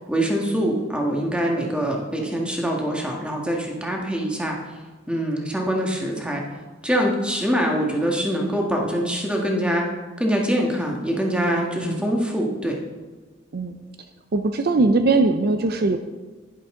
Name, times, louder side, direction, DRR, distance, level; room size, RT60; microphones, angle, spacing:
voice 1, 0.1-4.6 5.1-6.4 6.8-9.9 10.2-12.8, equal, 5° right, 0 dB, 1.6 m, -24 dB
voice 2, 11.6-12.0 13.5-13.8 14.3-16.0, right 3 dB, 55° right, 7 dB, 0.5 m, -21 dB
11.0 x 10.5 x 3.7 m, 1.3 s
head